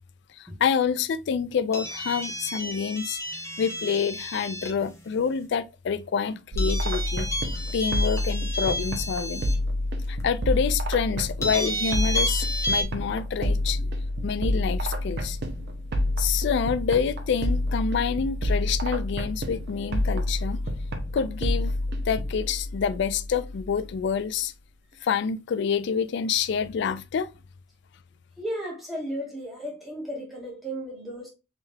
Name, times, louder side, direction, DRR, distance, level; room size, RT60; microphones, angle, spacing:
voice 1, 0.4-3.2 3.6-7.3 7.7-9.5 10.1-13.8 14.2-15.4 16.2-20.6 21.1-21.7 22.0-24.5 25.0-27.3, left 6 dB, 65° left, 0.3 m, -27 dB
sound 1, 1.7-4.8 6.6-9.5 10.2-10.3 11.4-12.8, equal, 15° left, 0.9 m, -31 dB
sound 2, 6.5-24.1, left 1 dB, 60° right, 0.7 m, -28 dB
voice 2, 28.4-31.3, equal, ahead, 1.5 m, -34 dB
3.7 x 3.4 x 2.6 m
head